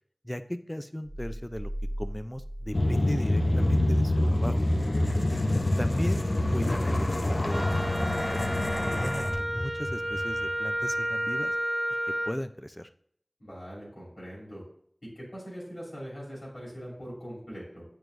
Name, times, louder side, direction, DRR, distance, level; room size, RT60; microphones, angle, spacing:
voice 1, 0.2-1.7 2.0-4.6 5.8-6.3 6.5-11.5 12.3-12.9, equal, 15° left, 10 dB, 0.4 m, -36 dB
sound 1, 1.0-3.8, equal, 5° right, 0.9 m, -38 dB
sound 2, 2.7-10.9, left 1 dB, 65° left, 0.6 m, -26 dB
voice 2, 5.1-5.6 13.4-14.6 15.1-17.8, equal, 85° left, -7 dB, 2.9 m, -42 dB
Wind instrument woodwind instrument, 7.5-12.4, right 1 dB, 50° right, 0.5 m, -31 dB
8.8 x 4.7 x 2.6 m, 0.64 s
wide cardioid pair, 40°, 0 cm